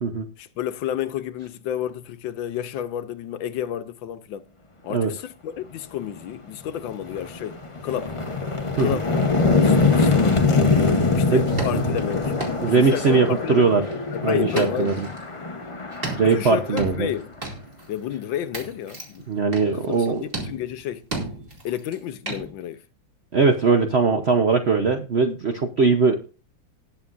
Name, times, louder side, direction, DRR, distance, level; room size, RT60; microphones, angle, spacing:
voice 1, 0.4-4.5 4.8-8.2 8.8-10.8 11.1-12.3 12.6-15.1 16.2-17.3 17.9-19.3 19.7-21.1 21.6-22.8, left 10 dB, 85° left, 1.5 m, -31 dB
sound 1, 6.1-6.2 6.7-17.4, left 3 dB, 30° left, 0.6 m, -23 dB
sound 2, 11.2-11.3 11.6-13.4 13.9-15.2 15.9-17.9 18.2-18.3 18.5-19.2 19.5-20.1 20.3-22.0 22.3-22.5, right 2 dB, 30° right, 2.6 m, -34 dB
voice 2, 12.6-13.8 14.2-14.9 16.1-17.1 19.3-20.2 23.3-26.3, right 4 dB, 50° right, 0.8 m, -20 dB
18.5 x 7.2 x 2.5 m
omnidirectional pair, 2.1 m